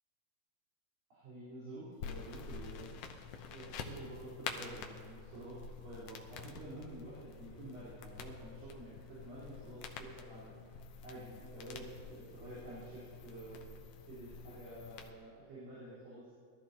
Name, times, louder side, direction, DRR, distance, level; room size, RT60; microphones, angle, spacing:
voice 1, 1.1-2.9 3.5-10.5 11.0-13.6 14.1-16.3, right 1 dB, 80° right, -13 dB, 6.0 m, -49 dB
sound 1, 2.0-15.1, left 5 dB, 85° left, 1.3 m, -48 dB
21.5 x 13.0 x 3.0 m, 2.1 s
omnidirectional pair, 3.9 m